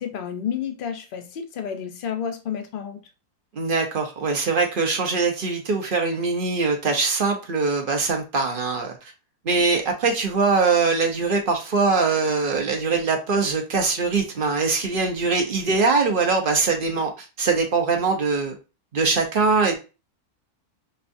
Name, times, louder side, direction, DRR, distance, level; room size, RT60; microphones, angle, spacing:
voice 1, 0.0-3.0, left 8 dB, 50° left, 5 dB, 0.6 m, -30 dB
voice 2, 3.5-9.1 9.4-18.6 18.9-19.8, right 4 dB, 45° right, 2 dB, 0.7 m, -22 dB
5.4 x 2.3 x 2.6 m, 0.30 s
omnidirectional pair, 1.6 m